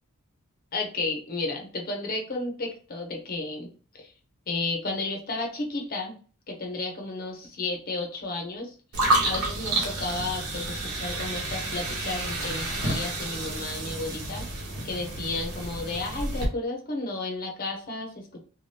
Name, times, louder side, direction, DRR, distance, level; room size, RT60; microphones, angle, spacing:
voice 1, 0.7-3.7 3.9-4.1 4.5-6.2 6.5-14.4 14.8-18.4, left 2 dB, 40° left, 2 dB, 0.6 m, -33 dB
sound 1, 8.9-16.4, right 2 dB, 70° right, 0.9 m, -30 dB
2.7 x 2.2 x 3.2 m, 0.40 s
head